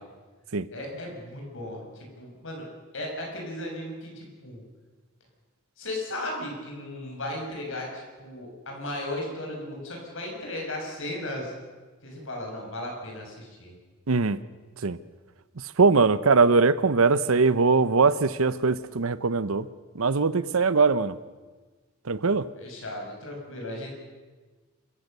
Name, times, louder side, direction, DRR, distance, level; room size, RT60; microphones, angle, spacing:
voice 1, 0.7-2.7 2.9-4.6 5.8-11.5 12.0-13.7 22.6-23.9, left 1 dB, 65° left, 0 dB, 6.7 m, -36 dB
voice 2, 14.1-14.4 14.8-15.0 15.8-19.7 20.0-21.2 22.1-22.5, right 4 dB, 75° right, 16 dB, 0.8 m, -21 dB
27.0 x 15.5 x 6.8 m, 1.3 s
head